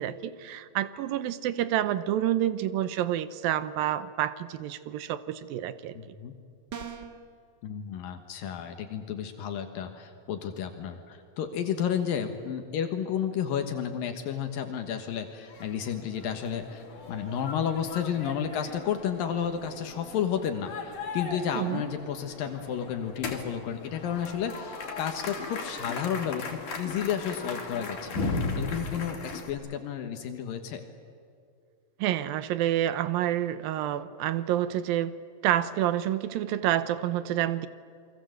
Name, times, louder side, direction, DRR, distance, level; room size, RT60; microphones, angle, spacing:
voice 1, 0.0-6.0 21.6-21.8 32.0-35.2 35.4-37.7, right 12 dB, 85° right, 13 dB, 2.6 m, -28 dB
voice 2, 5.9-6.3 7.6-30.8, left 8 dB, 75° left, 6 dB, 3.0 m, -32 dB
sound 1, 6.7-7.2, right 7 dB, 50° right, 1.3 m, -39 dB
sound 2, 15.3-29.5, left 3 dB, 60° left, 4.4 m, -37 dB
29.0 x 23.0 x 7.9 m, 2.4 s
omnidirectional pair, 4.2 m